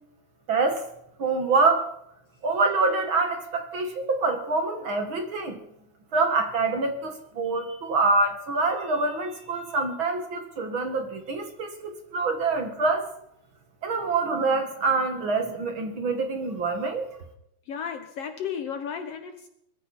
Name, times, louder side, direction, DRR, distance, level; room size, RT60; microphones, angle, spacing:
voice 1, 0.5-0.8 1.2-1.9 2.4-5.6 6.1-13.1 13.8-17.1, right 3 dB, 50° right, 6 dB, 1.7 m, -25 dB
voice 2, 17.6-19.5, left 7 dB, 70° left, 8 dB, 1.5 m, -34 dB
22.0 x 14.0 x 4.2 m, 0.75 s
omnidirectional pair, 4.1 m